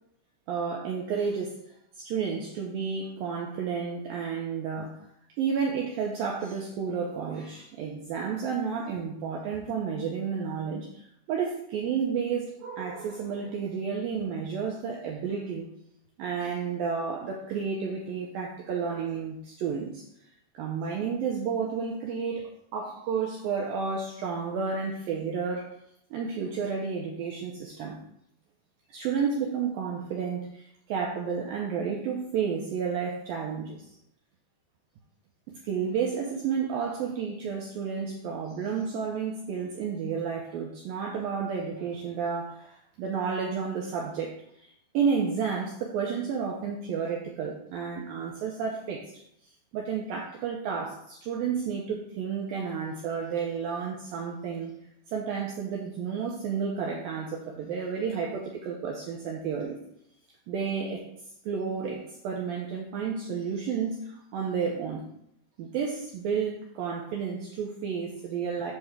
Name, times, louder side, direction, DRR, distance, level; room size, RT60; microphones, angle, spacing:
voice 1, 0.5-1.6 2.0-5.0 5.4-11.0 11.3-15.7 16.2-20.0 20.5-22.4 22.7-25.7 26.1-28.0 28.9-33.8 35.6-44.3 44.6-49.1 49.7-54.7 55.1-59.8 60.5-61.0 61.5-65.1 65.6-68.7, right 6 dB, 75° right, -1 dB, 2.2 m, -31 dB
8.6 x 3.5 x 6.6 m, 0.75 s
omnidirectional pair, 5.1 m